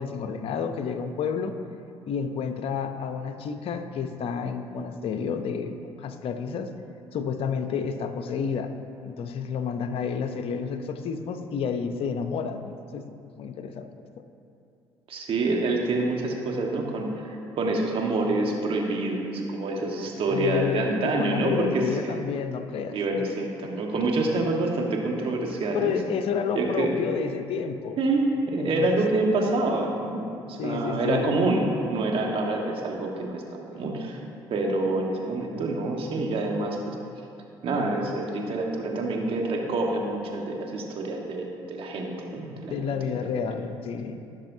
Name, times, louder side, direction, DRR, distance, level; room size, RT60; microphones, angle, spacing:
voice 1, 0.0-1.5 2.1-6.7 7.1-8.7 9.0-13.9 20.3-23.0 25.7-28.0 28.6-28.9 30.6-31.4 42.7-44.2, left 6 dB, 60° left, 8 dB, 0.7 m, -30 dB
voice 2, 15.1-22.2 22.9-25.9 26.5-27.1 28.0-34.2 34.5-36.9 37.6-43.2, right 2 dB, 55° right, 0 dB, 1.5 m, -27 dB
15.0 x 6.2 x 2.8 m, 2.6 s
hypercardioid pair, 60°, 11 cm